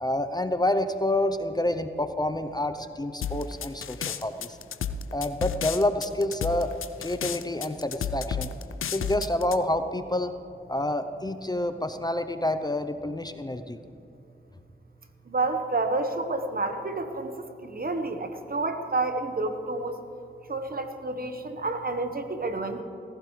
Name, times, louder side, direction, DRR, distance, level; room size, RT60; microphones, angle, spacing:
voice 1, 0.0-4.6 5.1-6.7 7.0-8.5 8.9-10.3 10.7-13.8, left 1 dB, 20° left, 9 dB, 0.7 m, -28 dB
sound 1, 3.2-9.6, left 7 dB, 85° left, 0.5 m, -32 dB
voice 2, 15.3-20.0 20.5-22.8, right 2 dB, 45° right, 7 dB, 1.3 m, -29 dB
18.0 x 15.5 x 3.3 m, 2.8 s
cardioid pair, 55°, 20 cm